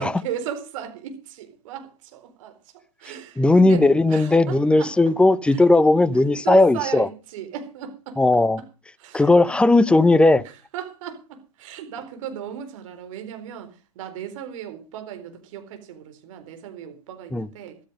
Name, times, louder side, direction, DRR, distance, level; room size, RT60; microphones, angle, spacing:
voice 1, 0.0-2.6 3.0-5.1 5.5-5.6 6.4-8.2 8.6-8.7 9.0-9.6 10.4-17.8, right 9 dB, 55° right, 4.3 m, -36 dB
voice 2, 3.4-7.1 8.2-8.6 9.1-10.4 17.3-17.5, left 2 dB, 5° left, 0.7 m, -17 dB
14.5 x 13.0 x 5.2 m
hypercardioid pair, 110°, 20 cm